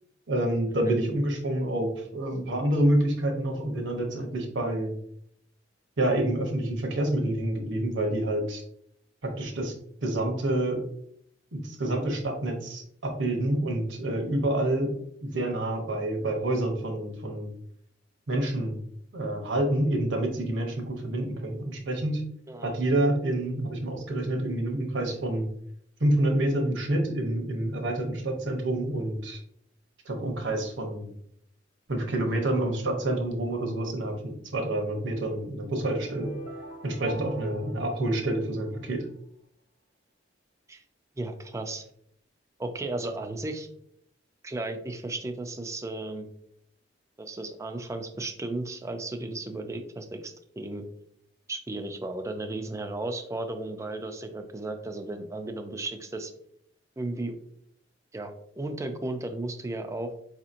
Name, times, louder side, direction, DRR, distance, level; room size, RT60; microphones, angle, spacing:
voice 1, 0.3-4.9 6.0-8.6 9.2-9.7 10.0-10.8 11.5-14.9 15.2-17.5 18.3-18.8 19.1-22.2 22.6-25.5 26.0-29.4 30.0-31.1 31.9-36.3 36.8-39.1, right 1 dB, 75° right, 2 dB, 0.9 m, -28 dB
sound 1, 36.0-39.0, right 1 dB, 40° left, 0.7 m, -44 dB
voice 2, 41.2-41.8 42.6-43.7 44.4-46.3 47.2-50.9 51.5-56.3 57.0-57.4 58.1-60.1, right 2 dB, 15° right, 6 dB, 0.4 m, -34 dB
4.8 x 2.8 x 2.5 m, 0.70 s
head